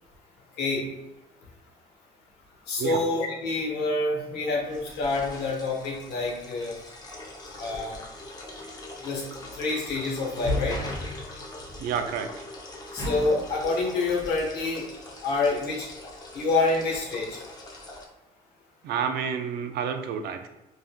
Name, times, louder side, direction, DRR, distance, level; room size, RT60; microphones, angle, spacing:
voice 1, 2.7-6.7 7.6-8.0 9.0-9.2 9.5-10.8 12.9-14.9 15.2-15.9 16.3-17.4, left 3 dB, 80° left, -2 dB, 1.0 m, -27 dB
sound 1, 4.5-18.1, left 1 dB, 25° left, 0.6 m, -38 dB
voice 2, 11.8-12.4 18.8-20.5, right 7 dB, 70° right, 7 dB, 0.4 m, -30 dB
3.4 x 2.5 x 2.2 m, 0.99 s
cardioid pair, 110°, 17 cm